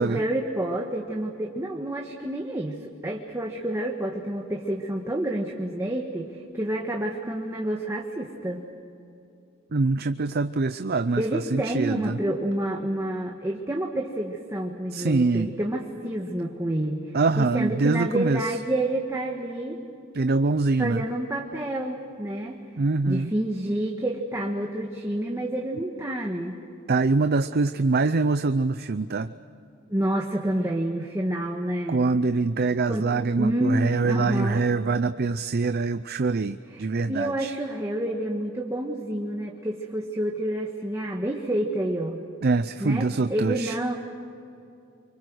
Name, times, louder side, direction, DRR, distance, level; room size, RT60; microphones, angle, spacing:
voice 1, 0.0-8.7 11.2-19.8 20.8-22.6 23.1-26.6 29.9-32.0 32.8-33.1 33.3-34.6 36.7-42.2 42.8-43.9, right 1 dB, 15° right, 0 dB, 1.6 m, -29 dB
voice 2, 9.7-11.2 11.5-12.2 14.9-15.5 17.1-18.4 20.1-21.0 22.8-23.3 26.9-29.3 31.9-37.5 42.4-43.7, right 3 dB, 50° right, 11 dB, 0.6 m, -24 dB
29.5 x 24.0 x 6.3 m, 2.6 s
head